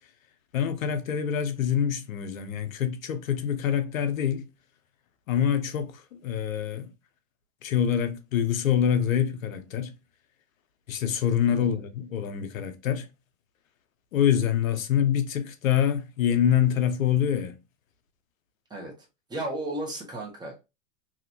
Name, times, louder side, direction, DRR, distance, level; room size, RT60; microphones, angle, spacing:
voice 1, 0.5-4.5 5.3-6.9 7.6-9.9 10.9-13.1 14.1-17.6, left 9 dB, 75° left, 0.7 m, -25 dB
voice 2, 18.7-20.6, right 1 dB, 10° right, 1.2 m, -35 dB
2.9 x 2.9 x 2.5 m
hypercardioid pair, 100°, 40 cm